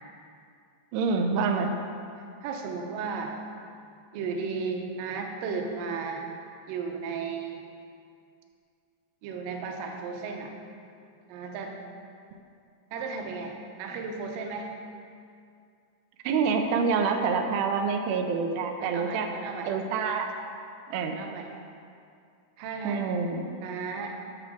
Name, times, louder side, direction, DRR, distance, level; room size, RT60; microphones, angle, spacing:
voice 1, 0.9-1.7 16.2-19.3 19.7-20.3 20.9-21.2 22.8-23.5, right 5 dB, 90° right, 4 dB, 2.9 m, -26 dB
voice 2, 2.2-3.4 4.1-6.2 6.7-7.6 9.2-10.5 11.3-11.8 12.9-14.7 18.8-19.7 21.1-21.5 22.6-23.2 23.6-24.1, right 5 dB, 75° right, 2 dB, 2.3 m, -35 dB
9.8 x 6.2 x 6.2 m, 2.4 s
omnidirectional pair, 4.7 m